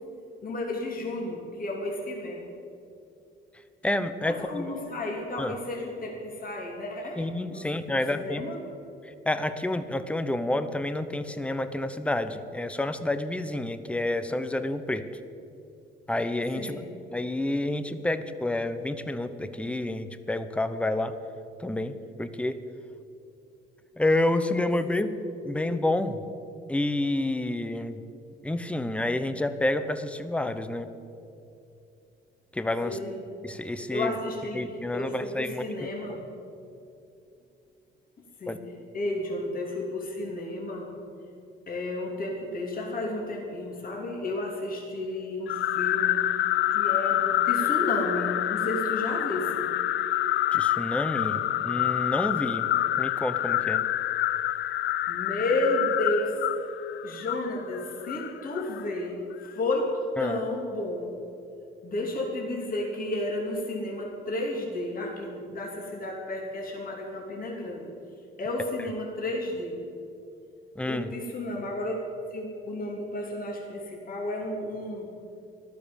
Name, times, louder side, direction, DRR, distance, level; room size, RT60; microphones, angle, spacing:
voice 1, 0.4-2.4 4.2-8.6 16.5-16.9 24.8-25.0 25.5-25.8 32.8-33.2 33.9-36.2 38.4-38.6 38.9-40.9 41.7-46.2 46.7-49.7 55.1-56.4 57.0-59.9 60.2-61.1 61.8-67.9 68.4-69.8 70.9-71.9 72.3-75.1, left 2 dB, 45° left, -1 dB, 3.1 m, -32 dB
voice 2, 3.8-4.7 5.4-5.6 7.2-8.4 9.3-15.1 16.1-16.8 17.1-21.2 21.6-22.6 24.0-25.2 25.4-26.2 26.7-28.0 28.4-30.9 32.5-33.0 33.4-34.1 34.5-35.9 38.5-38.6 50.5-52.7 53.0-53.8 60.2-60.4 70.8-71.1, left 1 dB, 5° left, 10 dB, 0.9 m, -29 dB
sound 1, 45.5-58.8, left 13 dB, 70° left, 0.5 m, -27 dB
14.5 x 12.0 x 7.2 m, 2.7 s
cardioid pair, 90°, 20 cm